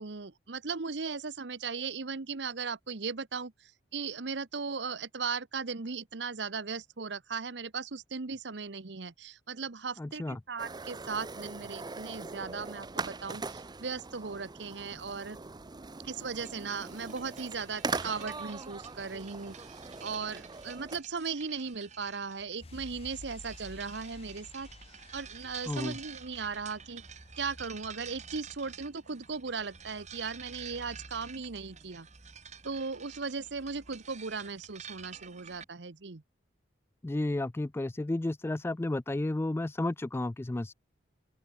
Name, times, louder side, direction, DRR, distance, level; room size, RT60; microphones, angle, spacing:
voice 1, 0.0-15.4 16.0-19.6 20.0-27.0 27.4-32.1 32.6-36.2, right 5 dB, 75° right, 1.0 m, -37 dB
voice 2, 10.0-10.4 25.7-25.9 37.0-40.7, left 2 dB, 15° left, 0.3 m, -32 dB
sound 1, 10.6-21.0, right 3 dB, 25° right, 0.7 m, -41 dB
sound 2, 16.4-35.6, right 6 dB, 40° right, 3.5 m, -50 dB
sound 3, 22.6-29.1 29.4-29.5, left 2 dB, 35° left, 0.8 m, -53 dB
open air
head